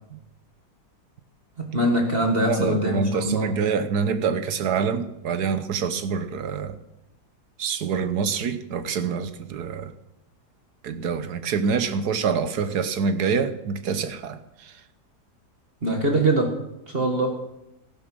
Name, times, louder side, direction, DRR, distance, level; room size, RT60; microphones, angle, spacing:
voice 1, 1.6-3.5 15.8-16.6 16.9-17.4, right 1 dB, 35° right, 1.9 m, -23 dB
voice 2, 2.4-6.8 7.6-9.9 10.8-14.7, right 6 dB, 70° right, 1.5 m, -26 dB
15.0 x 11.5 x 6.2 m
omnidirectional pair, 1.8 m